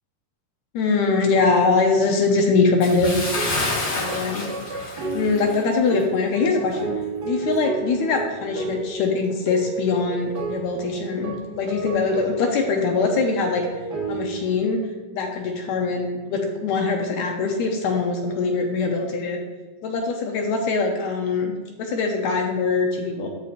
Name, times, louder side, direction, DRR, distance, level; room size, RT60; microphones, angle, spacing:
voice 1, 0.7-3.4 4.0-4.4 5.1-6.9 7.3-13.8 14.1-14.9 15.1-19.4 19.8-21.5 21.8-23.3, left 4 dB, 75° left, 2 dB, 1.7 m, -22 dB
Bathtub (filling or washing) / Splash splatter, 2.8-5.7 6.0-6.2 6.7-6.8, left 2 dB, 45° left, 1.7 m, -28 dB
sound 1, 3.3-14.5, right 3 dB, 75° right, 0.9 m, -32 dB
13.0 x 4.5 x 2.5 m, 1.4 s
omnidirectional pair, 3.9 m